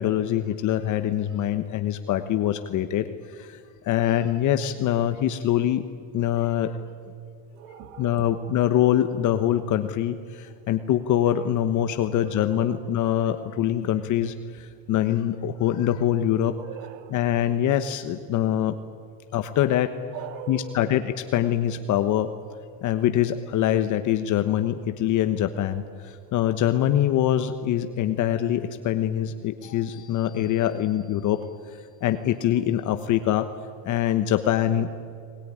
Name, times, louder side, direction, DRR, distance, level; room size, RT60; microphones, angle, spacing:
voice 1, 0.0-3.0 3.9-5.8 6.1-6.7 8.0-10.2 10.7-14.3 14.9-16.5 17.1-18.7 19.3-19.9 20.5-21.0 21.3-22.3 22.8-25.8 26.3-31.4 32.0-33.5 33.9-34.9, left 11 dB, 45° left, 1.2 m, -23 dB
voice 2, 7.5-8.5 12.1-12.8 14.6-14.7 16.5-17.2 20.1-21.0, right 10 dB, 80° right, 2.0 m, -40 dB
21.5 x 20.0 x 9.9 m
cardioid pair, 130°, 40 cm